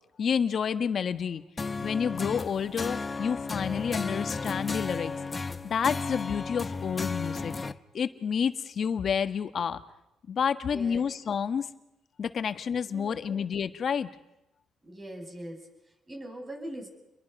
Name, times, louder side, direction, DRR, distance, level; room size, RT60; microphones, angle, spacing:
voice 1, 0.2-1.4 1.8-5.1 5.4-7.5 7.9-9.8 10.3-11.7 12.2-14.1, left 7 dB, 55° left, 10 dB, 1.4 m, -29 dB
sound 1, 1.6-7.7, left 4 dB, 30° left, 0.9 m, -34 dB
voice 2, 10.6-11.0 12.9-13.3 14.8-16.9, right 1 dB, 25° right, 4 dB, 6.5 m, -42 dB
29.5 x 22.5 x 5.4 m, 0.91 s
cardioid pair, 90°, 0 cm